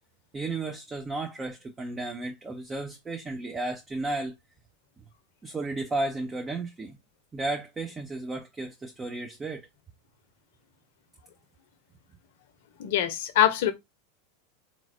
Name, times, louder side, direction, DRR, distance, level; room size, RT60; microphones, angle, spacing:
voice 1, 0.3-4.4 5.4-7.0 7.3-9.7, right 2 dB, 20° right, 0.7 m, -33 dB
voice 2, 12.8-13.7, left 11 dB, 65° left, 0.8 m, -23 dB
3.9 x 3.0 x 2.6 m
hypercardioid pair, 95°, 0 cm